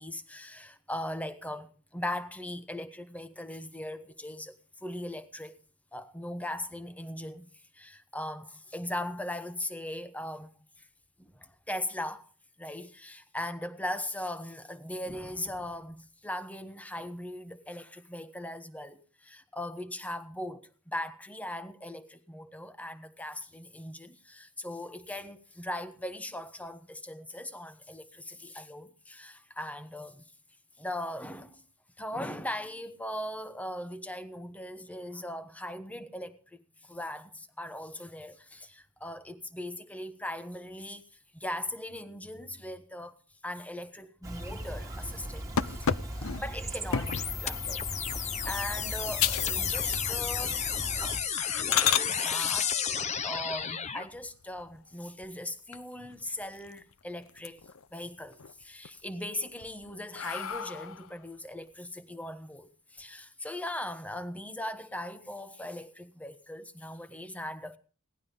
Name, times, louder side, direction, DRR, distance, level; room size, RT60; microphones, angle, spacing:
voice 1, 0.0-5.6 5.9-7.5 7.7-10.5 10.8-10.9 11.2-12.3 12.6-30.3 30.8-31.6 32.0-41.0 41.3-43.2 43.4-45.9 46.2-50.7 51.0-51.2 51.5-57.6 57.9-67.8, left 1 dB, 5° left, 1.1 m, -39 dB
Chirp tweet, 44.2-51.2, right 1 dB, 15° right, 1.9 m, -39 dB
sound 1, 45.6-47.4 47.9-48.2 48.7-48.8 49.2-49.5 49.8-50.4 50.7-50.9 51.4-52.1 54.1-54.8 55.2-55.3 55.7-55.8 56.1-56.9 57.3-57.9 58.3-58.9 59.4-61.1, left 8 dB, 70° left, 0.6 m, -32 dB
sound 2, 47.1-54.1, left 8 dB, 30° left, 0.9 m, -32 dB
18.0 x 11.5 x 5.4 m
head